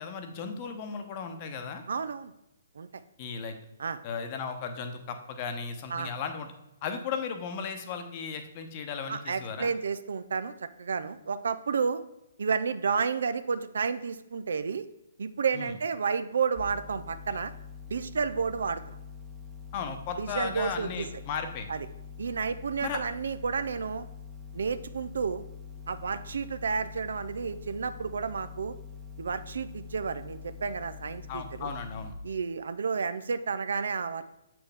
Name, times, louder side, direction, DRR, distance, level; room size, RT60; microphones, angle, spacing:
voice 1, 0.0-1.8 3.2-3.5 4.0-6.5 6.8-9.7 15.5-15.7 19.7-21.7 22.8-23.0 31.3-32.1, left 6 dB, 35° left, 7 dB, 0.9 m, -36 dB
voice 2, 1.9-2.3 2.7-2.9 3.8-4.0 5.9-6.1 9.1-12.0 12.4-14.8 15.2-17.5 17.9-19.0 20.2-21.1 21.7-21.9 22.2-24.1 24.5-25.4 25.9-28.7 29.2-31.7 32.2-34.3, right 5 dB, 60° right, 13 dB, 0.4 m, -31 dB
sound 1, 16.6-32.1, left 6 dB, 5° right, 0.8 m, -45 dB
7.6 x 6.0 x 3.4 m, 0.91 s
figure-of-eight pair, 125°, 0 cm